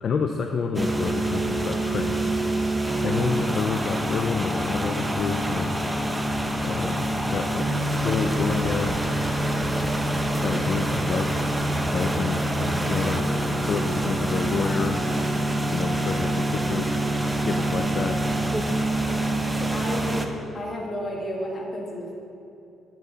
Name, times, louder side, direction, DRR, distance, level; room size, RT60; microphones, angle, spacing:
voice 1, 0.0-2.2 3.0-5.8 6.6-7.7 8.0-9.0 10.4-11.4 11.9-13.3 13.6-15.0 15.7-16.9 17.4-18.3, left 5 dB, 55° left, 4 dB, 0.5 m, -29 dB
sound 1, 0.7-20.3, right 1 dB, 10° right, 0.7 m, -26 dB
voice 2, 19.5-20.2 20.5-22.1, equal, 35° left, -2 dB, 2.0 m, -32 dB
10.0 x 7.4 x 4.1 m, 2.7 s
cardioid pair, 90°, 0 cm